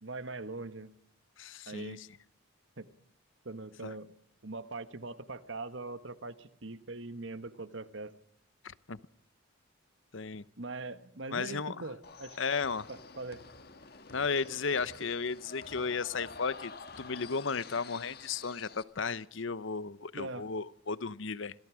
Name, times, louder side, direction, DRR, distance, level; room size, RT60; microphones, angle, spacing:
voice 1, 0.0-0.9 1.7-2.0 2.8-2.9 3.4-4.1 4.4-8.1 10.6-12.4 12.9-13.4 20.1-20.5, right 3 dB, 65° right, 1.4 m, -41 dB
voice 2, 1.4-2.1 3.8-3.9 8.6-9.0 10.1-10.4 11.3-11.8 12.4-12.9 14.1-16.7 17.0-21.5, left 5 dB, 70° left, 0.8 m, -34 dB
sound 1, 12.0-18.8, left 4 dB, 50° left, 1.5 m, -49 dB
26.0 x 18.0 x 6.3 m
head